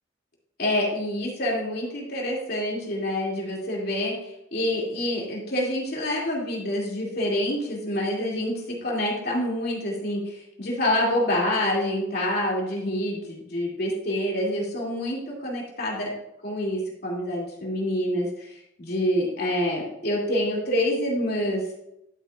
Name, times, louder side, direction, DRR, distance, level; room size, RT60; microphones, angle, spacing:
voice 1, 0.6-16.1 16.4-21.7, left 1 dB, 55° left, -3 dB, 2.7 m, -27 dB
12.0 x 8.1 x 2.5 m, 0.84 s
head